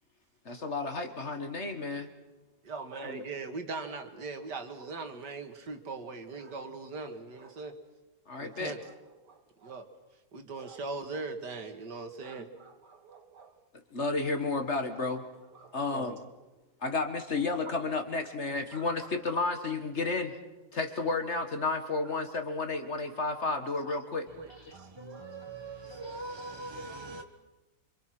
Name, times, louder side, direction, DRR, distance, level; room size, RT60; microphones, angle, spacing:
voice 1, 0.4-2.1 3.0-3.2 8.3-8.7 13.9-15.2 15.7-16.2 16.8-20.4 20.7-24.3, left 3 dB, 40° left, 1.8 m, -32 dB
voice 2, 2.6-7.7 8.4-9.0 9.2-9.9 10.3-13.6 14.9-15.0 15.5-16.1 17.6-17.7 18.7-18.9 20.0-20.1 22.0-22.1 23.6-23.7 24.7-25.3, right 3 dB, 65° right, 2.3 m, -41 dB
voice 3, 24.3-27.2, right 2 dB, 20° right, 1.0 m, -42 dB
26.5 x 25.5 x 6.1 m
omnidirectional pair, 2.0 m